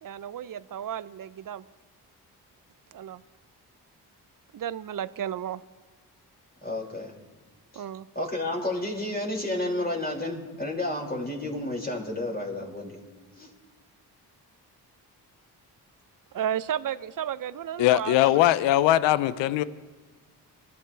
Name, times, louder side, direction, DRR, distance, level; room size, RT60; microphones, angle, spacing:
voice 1, 0.0-1.6 2.9-3.2 4.5-5.6 7.7-8.1 16.3-18.5, right 9 dB, 50° right, 16 dB, 0.7 m, -33 dB
voice 2, 6.6-7.1 7.7-7.8 8.1-13.0 13.4-13.5, left 1 dB, 20° left, -2 dB, 5.8 m, -31 dB
voice 3, 17.8-19.6, left 14 dB, 90° left, 17 dB, 0.6 m, -21 dB
26.5 x 14.0 x 3.4 m, 1.3 s
supercardioid pair, 45°, 43 cm